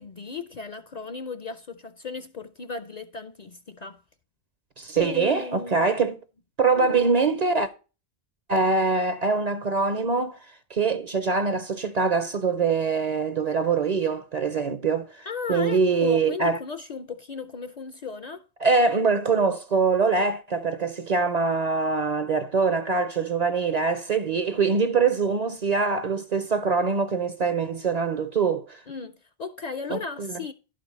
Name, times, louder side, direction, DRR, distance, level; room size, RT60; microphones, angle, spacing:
voice 1, 0.0-4.0 5.0-6.1 6.8-7.0 15.3-18.5 28.9-30.5, left 5 dB, 50° left, 0.5 m, -36 dB
voice 2, 4.8-6.2 6.6-7.7 8.5-10.4 10.7-16.6 18.6-28.8 29.9-30.4, right 4 dB, 45° right, 0.6 m, -24 dB
11.0 x 5.1 x 5.2 m
omnidirectional pair, 1.1 m